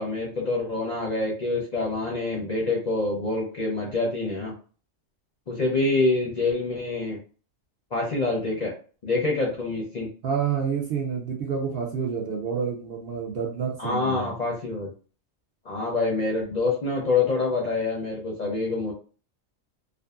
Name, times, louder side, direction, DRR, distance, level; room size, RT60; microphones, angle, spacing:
voice 1, 0.0-4.5 5.5-7.2 7.9-8.7 9.0-10.1 13.8-14.9 15.7-18.9, left 3 dB, 50° left, -2 dB, 0.5 m, -26 dB
voice 2, 10.2-14.3, right 6 dB, 55° right, -1 dB, 0.7 m, -28 dB
2.5 x 2.4 x 2.3 m, 0.38 s
omnidirectional pair, 1.3 m